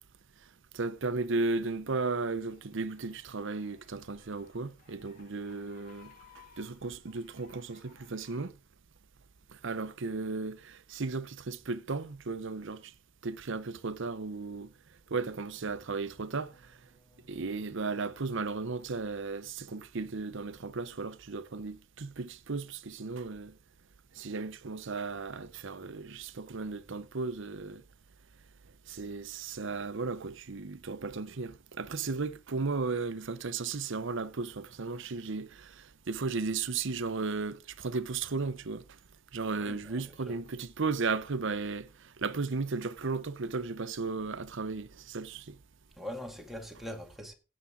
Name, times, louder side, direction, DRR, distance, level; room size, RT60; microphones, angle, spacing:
voice 1, 0.7-8.5 9.6-12.9 13.2-14.7 15.1-16.5 17.3-23.5 24.2-27.8 28.9-38.8 39.3-45.6, right 4 dB, 65° right, 0.8 m, -35 dB
sound 1, 1.8-8.5, left 6 dB, 45° left, 3.5 m, -61 dB
sound 2, 15.5-21.4 21.7-22.2 22.5-22.9, right 1 dB, 15° left, 7.6 m, -68 dB
voice 2, 39.6-40.4 46.0-47.3, left 1 dB, ahead, 2.1 m, -42 dB
17.0 x 7.5 x 3.8 m
head